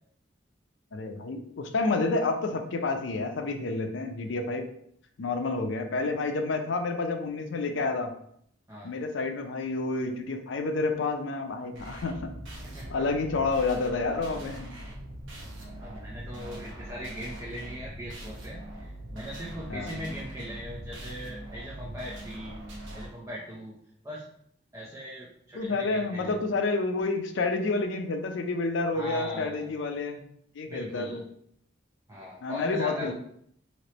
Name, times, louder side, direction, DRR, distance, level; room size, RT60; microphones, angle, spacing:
voice 1, 0.9-4.7 5.2-8.1 8.8-12.3 12.9-14.7 19.7-19.9 25.5-30.3 30.5-31.2 32.4-33.1, left 3 dB, 75° left, 5 dB, 0.5 m, -29 dB
sound 1, 11.7-23.1, right 1 dB, 80° right, 0.8 m, -42 dB
voice 2, 15.8-22.6 22.9-23.8 24.0-24.2 24.7-26.3 28.9-29.7 30.7-31.2 32.1-33.1, equal, 15° right, -5 dB, 0.5 m, -40 dB
3.1 x 2.9 x 2.9 m, 0.68 s
head